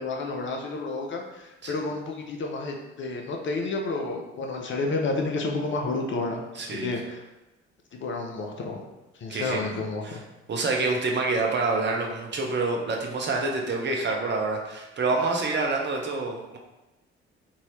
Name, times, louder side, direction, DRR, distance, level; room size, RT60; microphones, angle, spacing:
voice 1, 0.0-7.2 8.0-8.8 9.2-10.2, left 3 dB, 35° left, 1 dB, 0.6 m, -30 dB
voice 2, 6.5-7.0 9.3-10.2 10.5-16.6, right 3 dB, 30° right, 0 dB, 0.7 m, -27 dB
2.8 x 2.6 x 3.1 m, 1.0 s
figure-of-eight pair, 50°, 34 cm